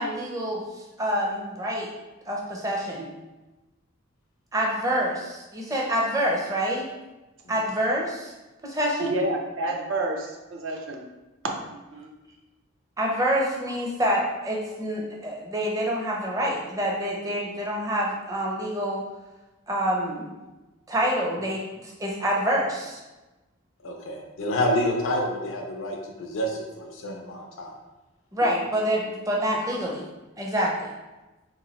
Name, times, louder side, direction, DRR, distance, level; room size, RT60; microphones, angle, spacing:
voice 1, 0.0-1.9 2.3-3.1 4.5-6.9 7.5-8.3 8.6-9.2 13.0-19.0 19.7-20.3 20.9-23.0 28.3-30.0 30.4-30.9, equal, 15° right, -2 dB, 0.5 m, -27 dB
voice 2, 9.0-11.0 11.7-12.1 24.4-24.8 28.4-28.7, right 2 dB, 75° right, 1 dB, 0.6 m, -31 dB
voice 3, 23.8-27.7, left 1 dB, 75° left, -1 dB, 0.4 m, -28 dB
3.0 x 2.6 x 4.0 m, 1.1 s
head